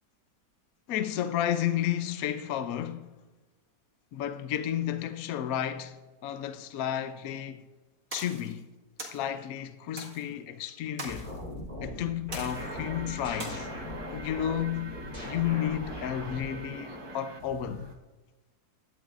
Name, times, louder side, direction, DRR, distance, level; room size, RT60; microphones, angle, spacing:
voice 1, 0.9-3.1 4.1-6.0 6.2-7.6 8.1-8.6 9.0-11.3 11.8-13.7 14.1-17.9, left 10 dB, 70° left, 1.1 m, -32 dB
sound 1, 8.1-8.5 9.0-9.2 10.0-10.2 11.0-11.4 12.3-12.8 13.4-13.5, right 2 dB, 50° right, 2.2 m, -40 dB
sound 2, 11.1-17.3, left 1 dB, 30° left, 4.3 m, -40 dB
sound 3, 12.4-18.0, right 2 dB, 25° right, 0.7 m, -45 dB
17.0 x 11.5 x 2.5 m
omnidirectional pair, 1.7 m